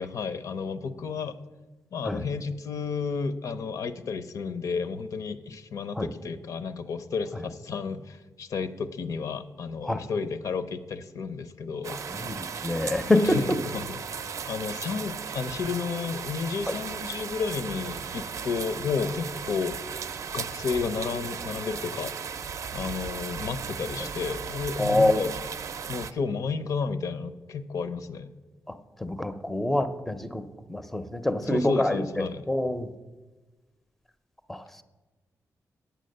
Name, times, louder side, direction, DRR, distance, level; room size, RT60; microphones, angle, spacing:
voice 1, 0.0-1.3 1.9-12.0 13.2-19.8 20.3-22.1 22.7-25.3 25.9-28.3 31.4-32.4, left 5 dB, 70° left, 12 dB, 0.6 m, -32 dB
sound 1, 11.8-26.1, right 6 dB, 60° right, 0.5 m, -36 dB
voice 2, 12.1-13.6 16.7-16.8 24.8-25.2 28.7-30.4 30.7-32.9 34.5-34.7, left 1 dB, 5° left, 11 dB, 0.5 m, -26 dB
9.0 x 7.2 x 6.5 m, 1.2 s
wide cardioid pair, 160°, 6 cm